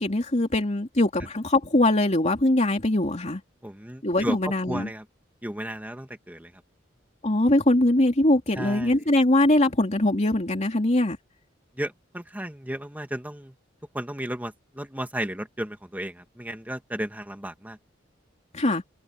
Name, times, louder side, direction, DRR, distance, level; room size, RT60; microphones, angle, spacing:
voice 1, 0.0-3.4 4.0-4.9 7.2-11.2 18.5-18.8, left 1 dB, 35° left, 3.0 m, -22 dB
voice 2, 3.6-4.4 4.7-5.0 5.4-6.5 8.6-8.9 11.8-13.5 13.9-17.8, right 1 dB, 10° right, 2.3 m, -34 dB
head